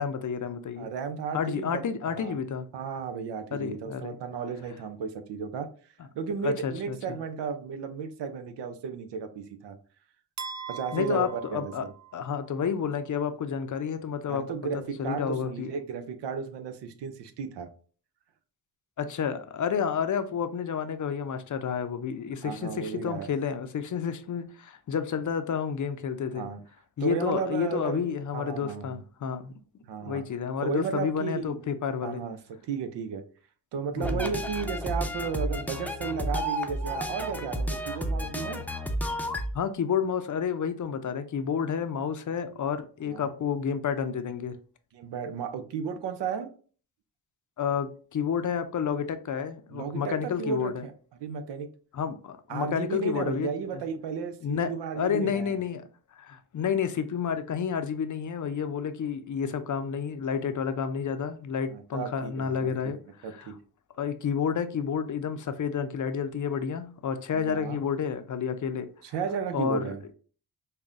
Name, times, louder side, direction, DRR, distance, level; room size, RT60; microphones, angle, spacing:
voice 1, 0.0-0.9 1.3-2.7 3.5-4.2 6.4-7.2 10.9-11.8 12.1-14.4 15.0-15.7 19.0-26.5 27.0-29.5 30.0-32.2 34.0-34.3 39.5-44.6 47.6-50.8 51.9-53.5 54.4-55.8 56.1-63.5 64.0-68.9 69.5-69.9, left 7 dB, 45° left, 0.5 m, -30 dB
voice 2, 0.8-2.4 2.7-5.7 6.2-9.8 10.7-11.9 14.3-17.7 22.4-23.3 26.3-26.6 27.0-29.0 29.9-30.2 30.6-31.6 32.0-33.2 33.7-38.7 43.1-43.3 44.9-46.5 49.7-50.9 51.2-51.7 52.5-55.6 61.7-62.9 63.2-63.5 67.3-67.8 69.0-70.0, right 6 dB, 85° right, 0.6 m, -34 dB
sound 1, 10.4-12.5, right 7 dB, 40° right, 0.6 m, -41 dB
sound 2, 34.0-39.5, equal, 5° left, 0.6 m, -31 dB
5.4 x 2.2 x 2.5 m
cardioid pair, 60°, 41 cm